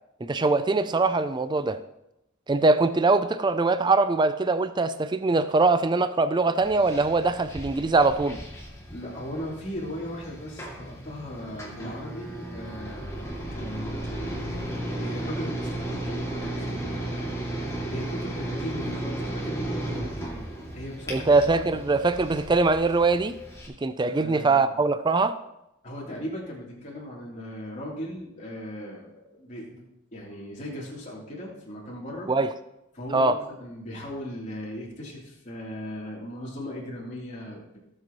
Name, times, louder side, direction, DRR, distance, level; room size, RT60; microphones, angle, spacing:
voice 1, 0.2-1.8 2.5-8.4 21.1-23.4 23.8-25.4 32.3-32.5 33.1-33.3, right 3 dB, 20° right, 12 dB, 0.4 m, -22 dB
sound 1, 6.6-23.7, right 1 dB, 15° left, 2.4 m, -35 dB
voice 2, 8.9-14.7 15.0-17.1 17.9-20.4 20.7-21.9 24.0-24.7 25.8-32.3 32.9-37.6, equal, 35° left, -4 dB, 3.2 m, -38 dB
18.0 x 7.8 x 3.0 m, 0.89 s
head